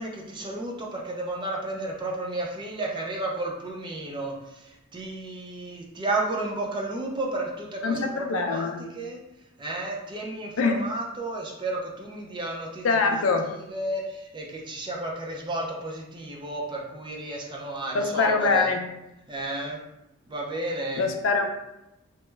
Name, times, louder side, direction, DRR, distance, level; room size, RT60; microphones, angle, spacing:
voice 1, 0.0-9.2 9.6-13.3 13.7-18.7 19.3-19.8 20.3-21.1, right 2 dB, 20° right, -1 dB, 0.4 m, -32 dB
voice 2, 7.8-8.8 10.6-10.8 12.8-13.4 17.9-18.8 21.0-21.5, left 4 dB, 65° left, 4 dB, 0.4 m, -23 dB
3.0 x 2.2 x 3.2 m, 0.90 s
head